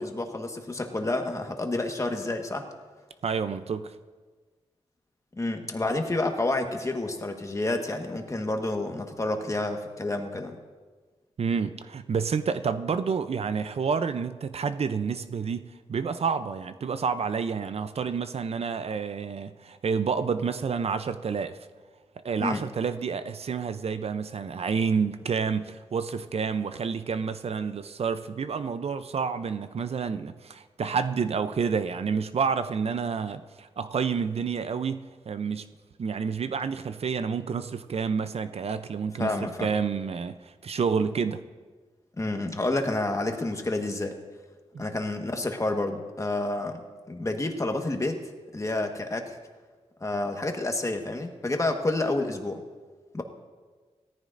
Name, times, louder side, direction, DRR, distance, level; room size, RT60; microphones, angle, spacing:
voice 1, 0.0-2.7 5.4-10.6 22.4-22.6 39.2-39.7 42.2-44.1 44.8-48.2 48.5-49.4 50.0-52.6 53.1-53.2, left 2 dB, 25° left, 1.4 m, -29 dB
voice 2, 3.2-3.9 11.4-21.6 22.2-35.7 36.0-39.3 39.6-41.4 44.7-44.8, right 6 dB, 60° right, 0.5 m, -29 dB
17.5 x 14.0 x 2.6 m
cardioid pair, 75°, 12 cm